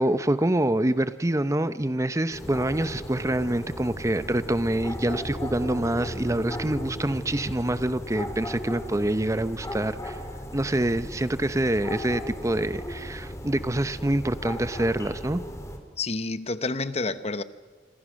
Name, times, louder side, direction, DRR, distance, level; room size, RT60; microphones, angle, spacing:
voice 1, 0.0-10.2 10.5-15.4, right 1 dB, 20° right, 13 dB, 0.7 m, -26 dB
sound 1, 2.3-15.8, equal, 20° left, 3.2 m, -36 dB
voice 2, 16.0-17.4, left 3 dB, 40° left, 13 dB, 1.0 m, -29 dB
26.5 x 26.0 x 6.4 m, 1.5 s
head